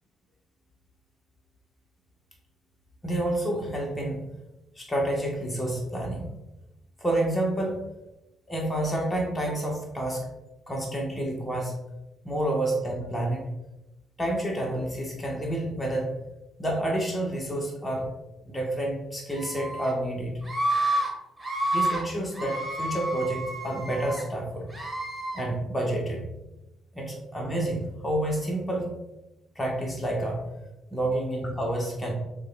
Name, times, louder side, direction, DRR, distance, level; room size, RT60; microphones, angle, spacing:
voice 1, 3.0-4.2 4.7-6.3 7.0-7.9 8.5-10.3 10.7-11.7 12.2-13.5 14.2-16.1 16.6-18.1 18.4-20.4 21.7-24.7 25.3-26.2 26.9-28.9 29.5-30.4 30.9-32.1, right 1 dB, 15° left, -1 dB, 1.4 m, -29 dB
Screaming, 19.3-19.9 20.4-21.1 21.4-22.0 22.3-24.2 24.7-25.4, right 1 dB, 15° right, 1.5 m, -29 dB
6.4 x 3.3 x 2.4 m, 0.96 s
hypercardioid pair, 50°, 0 cm